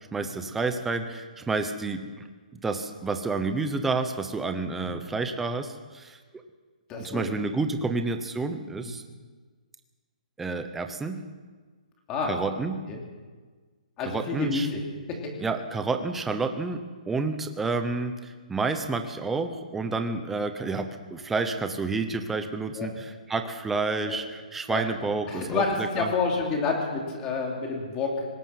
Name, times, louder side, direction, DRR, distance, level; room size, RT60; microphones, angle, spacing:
voice 1, 0.1-2.3 2.5-6.2 7.0-9.0 10.4-11.2 12.3-12.8 14.0-14.7 15.4-26.1, right 3 dB, 5° right, 7 dB, 0.9 m, -30 dB
voice 2, 6.9-7.3 8.8-8.9 12.1-12.4 12.9-13.0 14.0-14.8 15.1-15.3 22.7-22.9 24.0-24.2 24.7-24.8 25.3-28.3, left 4 dB, 15° left, 0 dB, 3.1 m, -29 dB
25.5 x 19.5 x 6.0 m, 1.4 s
hypercardioid pair, 175°, 4 cm